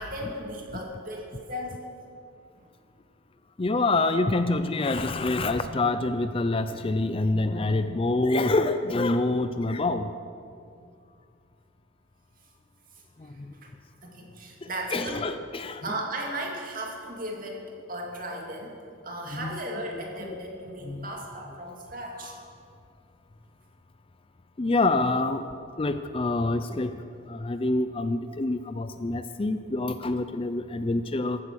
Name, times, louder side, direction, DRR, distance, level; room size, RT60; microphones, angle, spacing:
voice 1, 0.0-1.9 2.6-2.7 10.8-10.9 13.6-13.7 14.0-15.4 15.8-18.8 19.0-22.3, right 1 dB, 45° right, 0 dB, 2.5 m, -36 dB
voice 2, 3.6-10.1 13.4-13.5 14.9-16.0 19.3-19.6 19.9-20.4 20.8-21.1 22.2-22.3 24.6-25.4 25.8-26.9 27.3-31.4, left 2 dB, 25° left, 10 dB, 0.4 m, -26 dB
15.0 x 12.0 x 6.2 m, 2.4 s
head